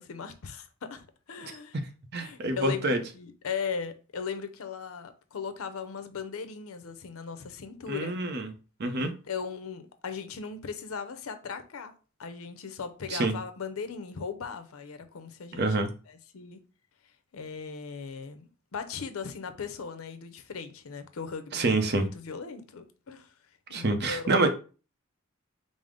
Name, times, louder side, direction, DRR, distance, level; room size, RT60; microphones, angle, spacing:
voice 1, 0.0-1.8 2.2-8.2 9.0-11.9 12.2-15.6 16.1-16.6 17.3-21.8 22.1-23.3 23.7-24.5, left 6 dB, 80° left, 0.6 m, -38 dB
voice 2, 2.1-3.0 7.9-8.5 8.8-9.1 13.1-13.3 15.6-15.9 21.5-22.1 23.7-24.5, right 2 dB, 50° right, 0.6 m, -26 dB
5.0 x 2.0 x 3.6 m
head